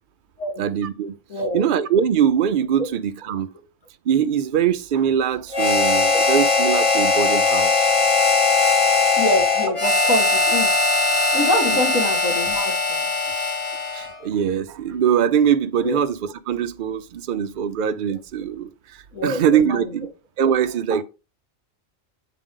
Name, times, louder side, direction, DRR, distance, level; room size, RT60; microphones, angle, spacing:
voice 1, 0.6-1.2 1.5-3.5 4.1-7.9 11.7-11.8 13.9-20.1 20.4-21.0, right 8 dB, 80° right, 0.4 m, -22 dB
voice 2, 1.3-1.7 6.1-6.2 9.2-10.7 11.3-13.1 15.8-16.0 19.1-19.9, left 1 dB, 70° left, 2.3 m, -25 dB
Harmonica, 5.5-14.2, left 3 dB, 25° left, 1.0 m, -19 dB
8.4 x 4.9 x 3.7 m
omnidirectional pair, 1.4 m